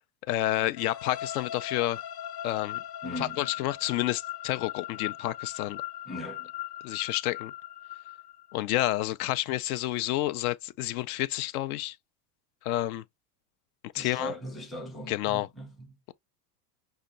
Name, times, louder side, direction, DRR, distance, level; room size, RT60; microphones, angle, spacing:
voice 1, 0.3-2.0 2.4-2.8 3.2-5.8 6.8-7.5 8.5-12.0 12.6-13.0 13.9-14.3 15.1-15.5, left 15 dB, 65° left, 0.6 m, -29 dB
sound 1, 0.8-8.6, left 12 dB, 85° left, 1.2 m, -39 dB
voice 2, 3.0-3.5 6.1-6.5 13.9-15.9, equal, ahead, 0.5 m, -39 dB
5.7 x 2.2 x 3.8 m
supercardioid pair, 165°, 47 cm